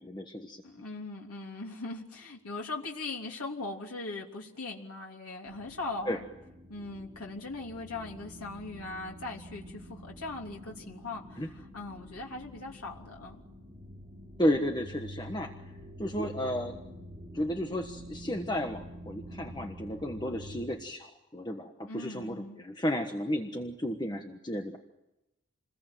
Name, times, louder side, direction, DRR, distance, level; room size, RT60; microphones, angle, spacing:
voice 1, 0.0-0.6 6.1-6.2 11.4-11.5 14.4-15.5 16.0-16.8 17.3-24.8, equal, 20° left, 3 dB, 1.3 m, -33 dB
voice 2, 0.6-6.3 6.7-13.4 21.9-22.6, left 3 dB, 90° left, 0 dB, 3.2 m, -40 dB
sound 1, 5.5-20.6, equal, 15° right, 6.5 m, -47 dB
28.0 x 21.5 x 9.1 m, 0.95 s
head